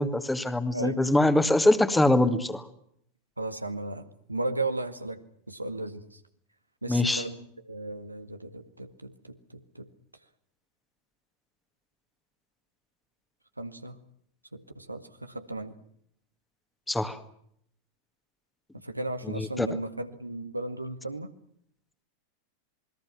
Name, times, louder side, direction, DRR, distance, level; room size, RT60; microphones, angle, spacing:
voice 1, 0.0-2.6 6.9-7.2 16.9-17.2 19.4-19.7, left 1 dB, 5° left, 11 dB, 2.1 m, -23 dB
voice 2, 3.4-5.2 5.5-6.2 6.8-9.9 13.6-14.0 14.5-15.8 18.7-21.3, right 2 dB, 85° right, 8 dB, 1.9 m, -35 dB
27.5 x 21.5 x 6.0 m, 0.69 s
figure-of-eight pair, 90°, 0 cm